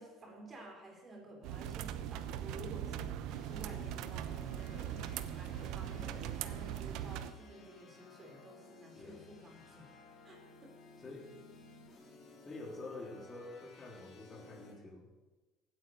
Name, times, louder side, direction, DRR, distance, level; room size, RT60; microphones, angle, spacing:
voice 1, 0.0-3.1 3.4-9.9 10.2-10.8, right 1 dB, 25° right, 1 dB, 4.2 m, -52 dB
sound 1, 1.4-7.3, right 10 dB, 70° right, 0.9 m, -40 dB
sound 2, 3.3-14.7, left 3 dB, 40° left, 3.5 m, -57 dB
voice 2, 12.4-15.1, left 2 dB, 25° left, 1 dB, 3.5 m, -48 dB
16.5 x 9.1 x 6.6 m, 1.2 s
cardioid pair, 125°, 0 cm